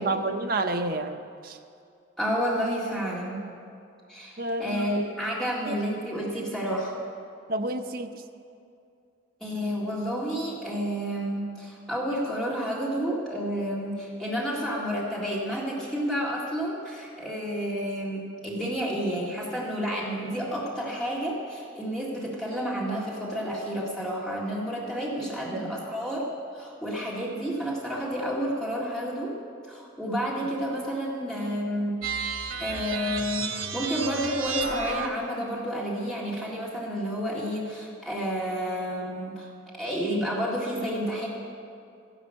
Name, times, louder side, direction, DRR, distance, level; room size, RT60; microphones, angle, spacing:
voice 1, 0.0-1.6 4.4-5.0 5.7-5.8 7.5-8.2 25.2-25.7, right 2 dB, 45° right, 6 dB, 0.7 m, -30 dB
voice 2, 2.2-3.4 4.1-6.9 9.4-26.3 26.5-29.3 29.7-32.0 32.6-39.5 39.8-41.3, equal, 5° left, -6 dB, 1.9 m, -30 dB
sound 1, 32.0-35.3, right 6 dB, 90° right, 1.3 m, -32 dB
14.0 x 11.0 x 6.3 m, 2.5 s
head